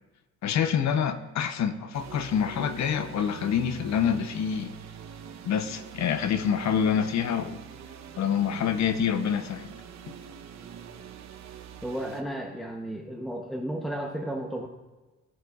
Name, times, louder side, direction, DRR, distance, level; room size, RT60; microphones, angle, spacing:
voice 1, 0.4-4.7 5.4-7.6 8.2-9.7, left 8 dB, 65° left, 0.8 m, -26 dB
sound 1, 1.9-12.2, right 8 dB, 65° right, 0.9 m, -44 dB
voice 2, 11.8-14.7, right 1 dB, ahead, 0.8 m, -33 dB
17.0 x 7.9 x 2.4 m
cardioid pair, 90°, 30 cm